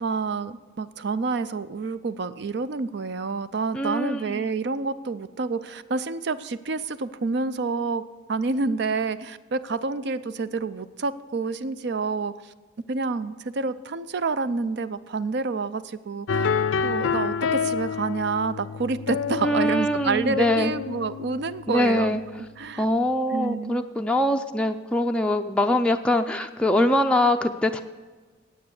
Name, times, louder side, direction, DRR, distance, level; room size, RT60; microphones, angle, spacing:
voice 1, 0.0-8.0 8.3-12.3 12.9-16.5 16.8-22.2 22.6-22.8 23.3-23.9, right 4 dB, 60° right, 14 dB, 0.5 m, -28 dB
voice 2, 3.7-4.5 19.4-20.7 21.7-22.2 22.8-27.8, left 1 dB, 5° left, 4 dB, 0.4 m, -23 dB
sound 1, 16.3-22.4, left 6 dB, 80° left, 0.4 m, -28 dB
9.3 x 8.6 x 8.1 m, 1.4 s
head